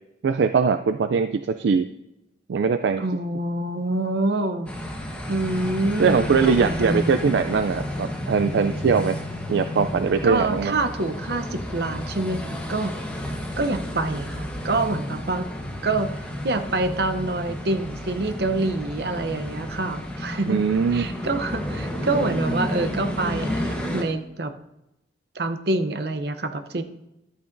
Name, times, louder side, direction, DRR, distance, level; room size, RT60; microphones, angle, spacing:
voice 1, 0.2-1.9 2.5-3.0 6.0-9.2 9.5-10.7 20.5-21.1, right 5 dB, 80° right, 9 dB, 0.4 m, -21 dB
voice 2, 3.0-4.7 5.3-7.2 10.2-13.0 13.6-15.5 15.8-16.1 16.4-20.6 20.9-24.5 25.3-26.8, right 2 dB, 60° right, 8 dB, 0.7 m, -26 dB
sound 1, 4.7-24.0, left 1 dB, 5° left, 1.1 m, -31 dB
13.0 x 8.6 x 2.6 m, 0.89 s
head